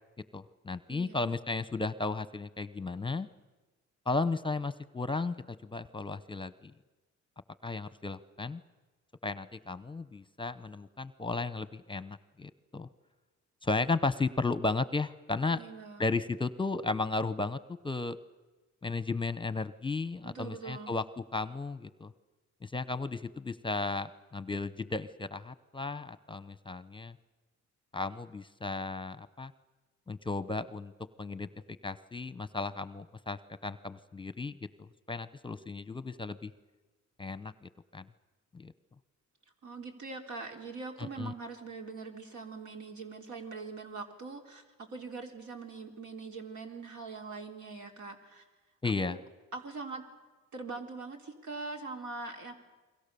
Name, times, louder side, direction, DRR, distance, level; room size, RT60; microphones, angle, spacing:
voice 1, 0.3-3.3 4.1-6.7 7.6-8.6 9.2-12.9 13.6-15.6 16.0-17.6 17.8-18.2 18.8-22.1 22.6-27.2 27.9-29.5 30.1-30.9 31.2-31.5 31.8-36.5 37.2-38.1 38.5-38.7 41.0-41.3 48.8-49.2, left 3 dB, 15° left, 15 dB, 0.9 m, -34 dB
voice 2, 0.9-1.3 15.5-16.1 20.2-21.0 39.6-48.4 48.8-49.2 49.5-50.1 50.5-52.5, right 4 dB, 75° right, 3 dB, 3.8 m, -42 dB
29.5 x 23.0 x 6.9 m, 1.2 s
cardioid pair, 90°, 30 cm